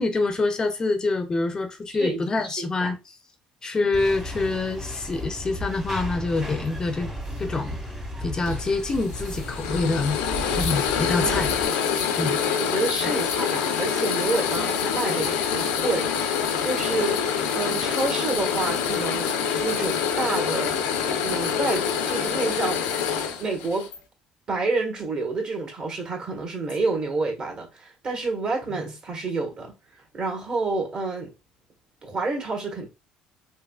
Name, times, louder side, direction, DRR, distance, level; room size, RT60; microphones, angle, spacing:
voice 1, 0.0-3.0 3.6-7.1 7.4-7.7 8.2-10.2 10.5-11.5 12.1-12.4 13.0-13.1, left 3 dB, 30° left, 0.5 m, -26 dB
voice 2, 2.6-2.9 11.2-11.5 12.6-17.3 17.5-22.9 23.4-23.9 24.5-29.7 30.1-31.3 32.0-32.9, right 3 dB, 45° right, 1.5 m, -29 dB
sound 1, 3.9-11.7, equal, 20° right, 1.2 m, -34 dB
sound 2, 8.5-24.0, left 7 dB, 90° left, 0.6 m, -26 dB
3.6 x 2.8 x 2.3 m
supercardioid pair, 85°, 3 cm